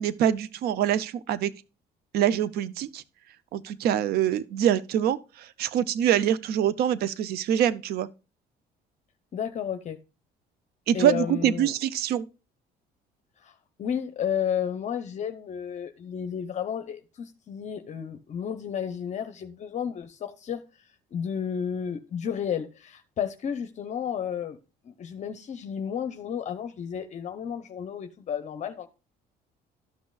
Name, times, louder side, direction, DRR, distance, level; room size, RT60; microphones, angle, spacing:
voice 1, 0.0-1.5 2.1-3.0 3.5-8.1 10.9-12.2, right 10 dB, 70° right, 0.5 m, -25 dB
voice 2, 9.3-10.0 10.9-11.7 13.4-13.5 13.8-20.6 21.1-24.6 24.8-28.9, left 8 dB, 45° left, 0.6 m, -32 dB
12.5 x 6.2 x 2.3 m
cardioid pair, 110°, 17 cm